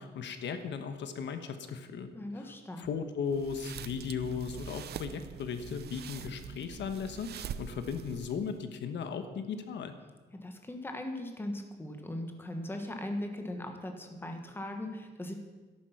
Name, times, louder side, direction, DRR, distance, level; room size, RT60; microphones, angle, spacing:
voice 1, 0.0-2.1 2.4-2.5 2.8-9.9, left 6 dB, 80° left, 8 dB, 1.2 m, -36 dB
voice 2, 2.1-2.9 10.4-15.3, left 1 dB, 10° left, 4 dB, 1.4 m, -39 dB
sound 1, 3.3-8.5, right 8 dB, 65° right, 0.6 m, -44 dB
13.5 x 11.5 x 5.9 m, 1.3 s
wide cardioid pair, 175°, 18 cm